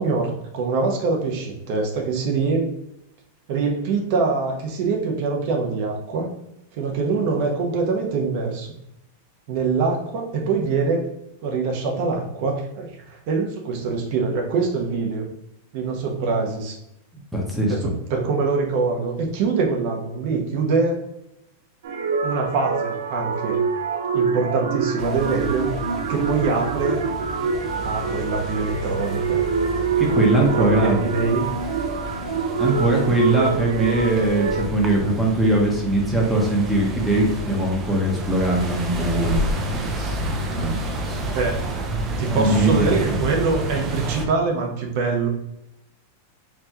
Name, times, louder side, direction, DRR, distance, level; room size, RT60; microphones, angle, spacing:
voice 1, 0.0-2.8 3.5-6.3 6.7-8.7 9.5-11.0 11.4-15.2 15.7-16.8 17.7-21.0 22.2-23.6 24.1-25.7 26.1-27.0 27.8-29.4 30.1-31.5 41.2-41.6 42.2-45.3, right 4 dB, 55° right, 1 dB, 1.0 m, -24 dB
voice 2, 17.3-17.9 30.0-31.0 32.6-41.2 42.3-43.1, right 2 dB, 5° right, -2 dB, 0.9 m, -21 dB
sound 1, 21.8-34.6, right 5 dB, 70° right, 0.6 m, -25 dB
sound 2, 25.0-44.2, right 1 dB, 25° right, 0.6 m, -30 dB
4.4 x 2.7 x 2.9 m, 0.83 s
supercardioid pair, 150°, 0 cm